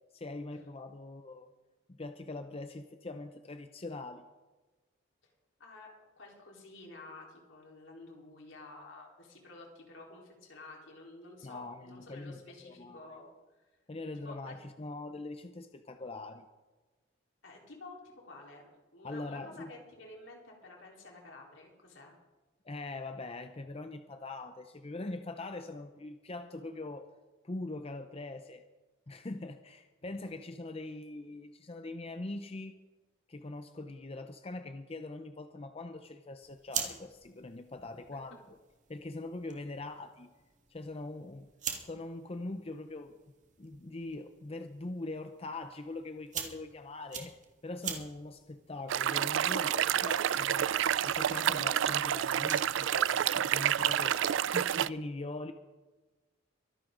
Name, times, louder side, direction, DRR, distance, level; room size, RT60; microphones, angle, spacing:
voice 1, 0.1-1.5 1.9-4.3 11.4-13.1 13.9-16.5 19.0-19.7 22.6-27.1 27.4-28.6 29.1-32.7 33.3-38.6 38.9-40.3 40.7-41.5 41.8-43.1 43.6-47.4 47.6-50.7 51.0-54.2 54.5-55.5, left 2 dB, 30° left, 8 dB, 0.6 m, -42 dB
voice 2, 5.6-13.3 14.2-14.5 17.4-18.7 18.9-22.2, left 2 dB, 75° left, -1 dB, 4.1 m, -51 dB
sound 1, 36.4-52.8, right 7 dB, 40° right, 1.9 m, -46 dB
sound 2, 48.9-54.9, right 10 dB, 70° right, 0.4 m, -29 dB
23.5 x 11.0 x 3.9 m, 1.2 s
head